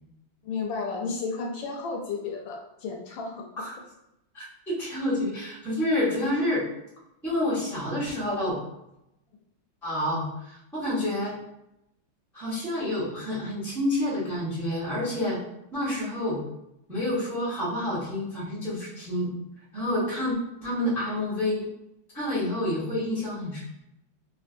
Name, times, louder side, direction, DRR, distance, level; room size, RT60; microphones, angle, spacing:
voice 1, 0.4-3.4 20.0-20.1, left 4 dB, 75° left, 1 dB, 1.3 m, -33 dB
voice 2, 4.3-6.6 7.2-8.6 9.8-11.4 12.3-15.4 15.7-16.4 16.9-19.3 19.7-20.3 20.6-21.7 22.1-23.8, left 1 dB, ahead, -7 dB, 0.5 m, -28 dB
3.5 x 2.4 x 2.5 m, 0.85 s
omnidirectional pair, 2.2 m